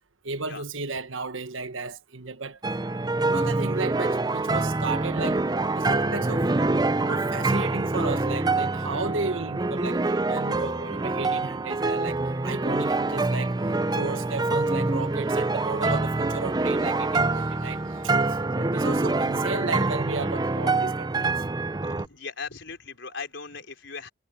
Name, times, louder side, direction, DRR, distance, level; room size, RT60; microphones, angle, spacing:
voice 1, 0.2-2.6 2.9-5.4 5.7-6.5 7.0-13.5 13.9-18.1 18.6-21.3, right 3 dB, 80° right, 1.3 m, -34 dB
sound 1, 2.6-22.1, right 3 dB, 20° right, 0.5 m, -26 dB
sound 2, 12.8-18.6, equal, 5° left, 2.9 m, -51 dB
voice 2, 21.8-24.1, left 4 dB, 65° left, 5.2 m, -40 dB
head